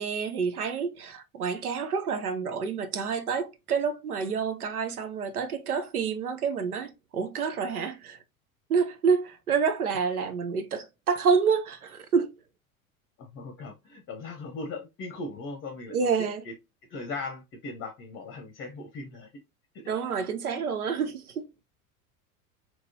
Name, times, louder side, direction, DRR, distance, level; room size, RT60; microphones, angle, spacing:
voice 1, 0.0-8.2 8.7-12.3 15.9-16.4 19.9-21.5, right 6 dB, 85° right, 0.6 m, -28 dB
voice 2, 13.2-16.5 16.9-19.3 19.7-20.1, left 3 dB, 30° left, 0.7 m, -39 dB
3.6 x 2.9 x 2.7 m
figure-of-eight pair, 80°, 43 cm